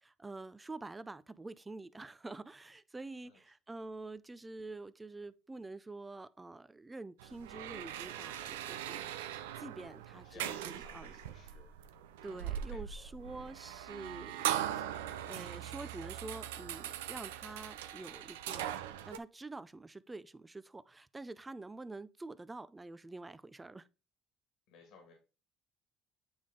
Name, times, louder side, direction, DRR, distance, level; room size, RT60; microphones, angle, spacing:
voice 1, 0.0-9.1 9.6-11.1 12.2-14.8 15.2-18.8 19.1-23.9, right 2 dB, 20° right, 0.4 m, -47 dB
sound 1, 7.2-19.2, right 11 dB, 90° right, 0.4 m, -40 dB
voice 2, 10.0-11.8 12.7-13.1 24.7-25.1, left 4 dB, 75° left, 2.0 m, -57 dB
8.6 x 3.6 x 3.7 m
hypercardioid pair, 65°, 0 cm